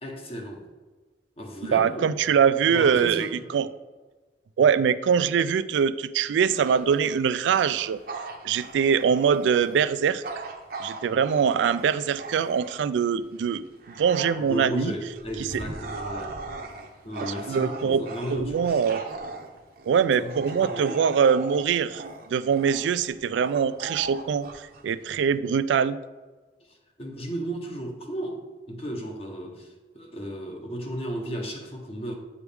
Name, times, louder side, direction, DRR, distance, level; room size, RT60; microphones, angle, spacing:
voice 1, 0.0-0.7 1.4-2.1 2.7-3.4 14.5-16.4 17.0-18.8 20.2-21.0 26.7-28.4 28.7-32.1, right 1 dB, 35° left, 2 dB, 0.9 m, -34 dB
voice 2, 1.6-3.7 4.6-8.0 8.4-10.2 10.8-13.6 14.0-14.9 17.2-18.0 18.3-19.0 19.9-22.0 22.3-26.0, right 7 dB, 90° right, 14 dB, 0.3 m, -23 dB
Bark / Growling, 6.5-13.0 13.5-25.4, right 3 dB, 55° right, 0.7 m, -39 dB
8.1 x 4.7 x 3.5 m, 1.3 s
head